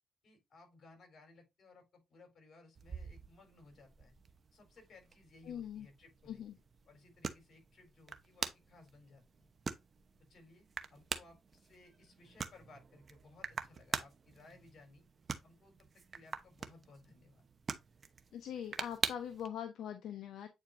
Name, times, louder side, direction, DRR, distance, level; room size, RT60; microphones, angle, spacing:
voice 1, 0.2-4.1 4.5-6.4 6.9-9.5 10.2-15.1 15.4-17.4, left 3 dB, 50° left, 3.9 m, -61 dB
sound 1, 2.8-19.5, right 5 dB, 40° right, 0.9 m, -45 dB
voice 2, 5.5-5.9 6.3-6.6 18.3-20.5, left 9 dB, 70° left, 0.9 m, -42 dB
8.8 x 4.5 x 2.6 m
cardioid pair, 90°, 0 cm